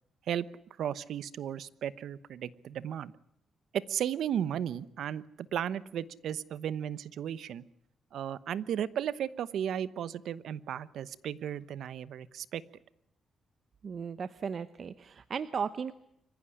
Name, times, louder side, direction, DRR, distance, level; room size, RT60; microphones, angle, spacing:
voice 1, 0.8-3.1 3.7-7.6 8.1-12.6, right 9 dB, 75° right, 17 dB, 1.0 m, -35 dB
voice 2, 13.8-15.9, right 6 dB, 50° right, 13 dB, 0.8 m, -36 dB
26.0 x 15.5 x 10.0 m, 0.77 s
cardioid pair, 110°, 0 cm